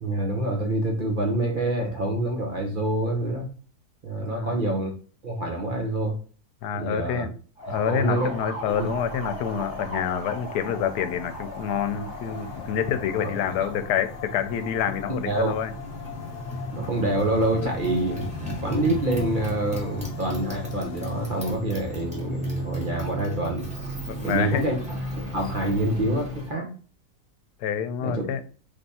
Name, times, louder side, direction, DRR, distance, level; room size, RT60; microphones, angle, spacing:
voice 1, 0.0-3.5 4.0-4.9 5.2-6.2 6.7-7.2 7.7-8.3 8.8-8.9 13.6-13.7 15.2-15.5 16.7-18.2 18.6-23.7 24.2-24.8 25.3-26.7 28.0-28.2, right 1 dB, 40° right, 1 dB, 0.8 m, -26 dB
voice 2, 4.2-4.6 6.6-7.3 7.7-15.7 17.6-17.7 24.1-24.6 27.6-28.4, left 8 dB, 90° left, 10 dB, 1.2 m, -27 dB
Motorcycle, 7.6-26.6, equal, 5° right, 1.2 m, -35 dB
sound 1, 8.7-21.6, left 7 dB, 60° left, 1.1 m, -43 dB
3.4 x 3.3 x 4.1 m, 0.39 s
omnidirectional pair, 1.7 m